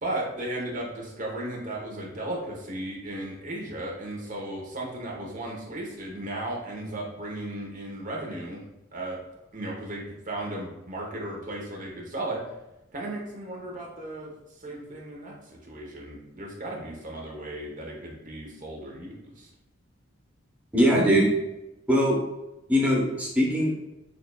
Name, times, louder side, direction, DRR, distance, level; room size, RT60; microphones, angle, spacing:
voice 1, 0.0-8.6 8.9-9.2 9.5-12.4 12.9-14.3 14.6-15.3 15.6-19.5, right 1 dB, 40° right, -2 dB, 1.0 m, -35 dB
voice 2, 20.7-21.3 21.9-22.2 22.7-23.7, equal, 10° right, -3 dB, 1.0 m, -21 dB
6.5 x 2.5 x 2.3 m, 0.95 s
head